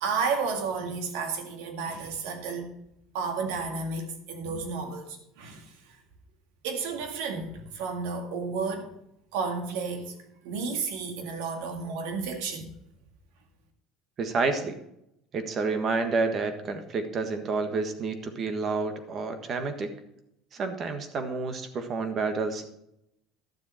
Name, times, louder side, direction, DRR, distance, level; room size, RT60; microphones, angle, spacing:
voice 1, 0.0-2.7 3.1-5.7 6.6-8.9 9.3-10.1 10.4-12.7, right 5 dB, 80° right, 5 dB, 2.0 m, -32 dB
voice 2, 14.2-14.8 15.3-19.9 20.5-22.7, right 4 dB, 40° right, 7 dB, 1.5 m, -29 dB
12.0 x 7.3 x 4.3 m, 0.81 s
supercardioid pair, 110°, 0 cm